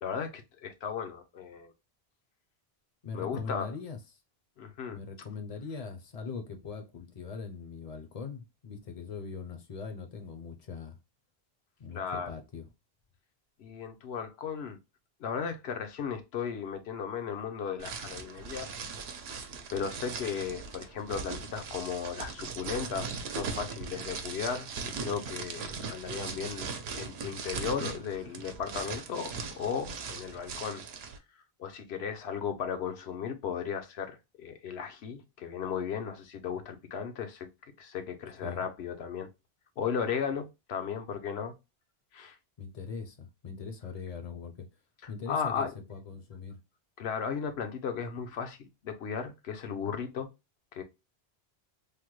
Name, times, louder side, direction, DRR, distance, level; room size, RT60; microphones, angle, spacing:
voice 1, 0.0-1.7 3.1-3.7 4.6-5.0 11.9-12.3 13.6-14.8 15.2-18.7 19.7-30.8 31.6-37.5 37.8-39.3 39.8-41.5 42.1-42.4 45.3-45.7 47.0-50.3 50.7-50.8, left 7 dB, 80° left, 0.9 m, -35 dB
voice 2, 3.0-4.0 4.9-11.0 11.8-12.7 38.4-38.6 42.6-44.7 45.1-46.6, left 5 dB, 45° left, 0.5 m, -41 dB
sound 1, 17.8-31.2, right 5 dB, 80° right, 0.9 m, -39 dB
3.4 x 2.1 x 3.0 m
omnidirectional pair, 1.1 m